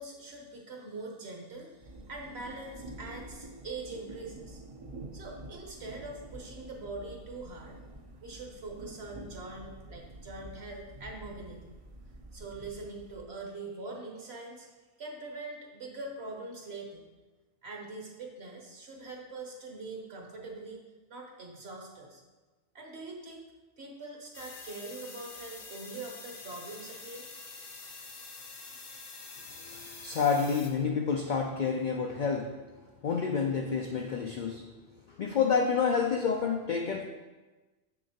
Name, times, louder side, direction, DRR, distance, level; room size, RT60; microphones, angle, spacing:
voice 1, 0.0-4.6 5.1-7.7 8.2-11.7 12.3-14.7 15.0-17.0 17.6-20.8 21.1-22.2 22.7-23.4 23.8-27.3, right 3 dB, 55° right, 1 dB, 1.2 m, -43 dB
sound 1, 1.8-13.2, right 1 dB, 40° right, 0.5 m, -48 dB
sound 2, 24.3-30.7, left 4 dB, 50° left, 0.9 m, -46 dB
voice 2, 29.6-32.7 33.0-34.7 35.1-37.0, left 6 dB, 70° left, 3 dB, 0.4 m, -29 dB
6.5 x 6.5 x 2.8 m, 1.2 s
omnidirectional pair, 1.3 m